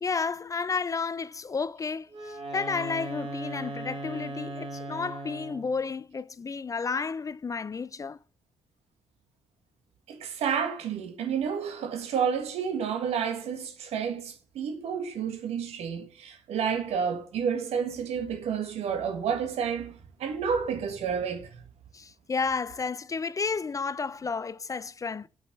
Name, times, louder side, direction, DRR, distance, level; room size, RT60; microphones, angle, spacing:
voice 1, 0.0-8.2 21.9-25.3, left 5 dB, 30° left, 0.4 m, -32 dB
Wind instrument woodwind instrument, 2.1-5.8, right 2 dB, 55° right, 2.5 m, -38 dB
voice 2, 10.1-21.6, right 7 dB, 75° right, 1.6 m, -30 dB
5.9 x 5.6 x 6.8 m
supercardioid pair, 60°, 11 cm